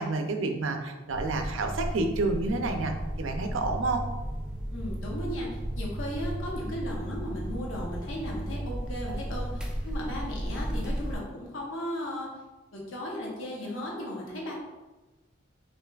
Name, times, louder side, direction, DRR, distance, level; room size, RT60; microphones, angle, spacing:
voice 1, 0.0-4.1, right 3 dB, 75° right, 5 dB, 0.5 m, -29 dB
sound 1, 1.1-11.2, right 1 dB, 5° right, 0.4 m, -34 dB
voice 2, 4.7-12.3 12.7-14.6, equal, 75° left, -2 dB, 0.8 m, -36 dB
5.7 x 2.6 x 2.3 m, 1.1 s
head